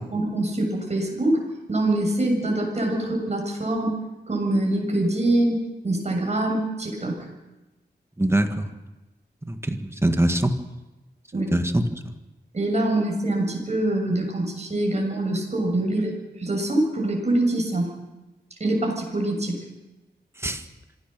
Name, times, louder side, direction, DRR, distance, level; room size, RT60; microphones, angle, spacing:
voice 1, 0.1-1.4 1.7-4.0 4.3-5.6 5.8-7.3 11.3-11.5 12.5-17.9 18.6-19.6, right 1 dB, 40° right, 0 dB, 7.2 m, -24 dB
voice 2, 8.2-8.7 9.4-10.5 11.5-12.0 20.4-20.6, right 1 dB, 15° right, 7 dB, 1.6 m, -23 dB
26.0 x 17.0 x 6.9 m, 1.1 s
wide cardioid pair, 120°, 18 cm